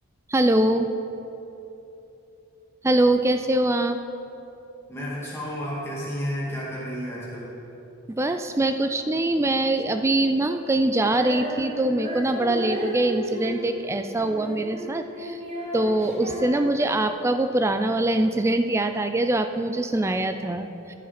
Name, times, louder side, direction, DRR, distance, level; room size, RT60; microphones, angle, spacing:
voice 1, 0.3-0.9 2.8-4.0 8.2-15.4 15.7-20.9, right 1 dB, 10° right, 8 dB, 0.3 m, -23 dB
voice 2, 4.9-7.5, equal, 10° left, -7 dB, 2.1 m, -31 dB
Female singing, 11.0-17.4, equal, 30° right, 1.3 m, -34 dB
12.0 x 7.2 x 4.2 m, 3.0 s
head